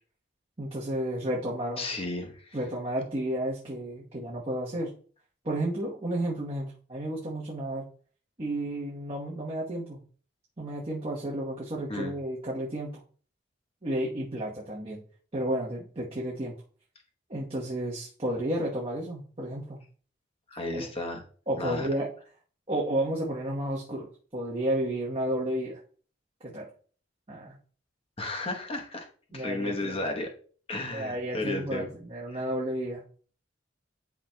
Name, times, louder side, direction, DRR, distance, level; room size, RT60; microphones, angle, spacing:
voice 1, 0.6-1.9 2.5-4.9 5.4-7.9 8.4-10.0 10.6-13.0 13.8-15.0 15.3-16.5 17.3-19.8 20.7-20.9 21.5-22.1 22.7-25.8 26.4-26.7 27.3-27.6 29.3-30.0 30.9-33.0, right 1 dB, 30° right, -4 dB, 1.1 m, -32 dB
voice 2, 1.8-2.6 11.9-12.1 20.5-21.2 21.6-21.9 28.2-29.1 29.3-30.3 30.7-31.9 32.3-32.4, left 2 dB, 30° left, 3 dB, 1.0 m, -33 dB
10.5 x 4.3 x 2.2 m, 0.43 s
head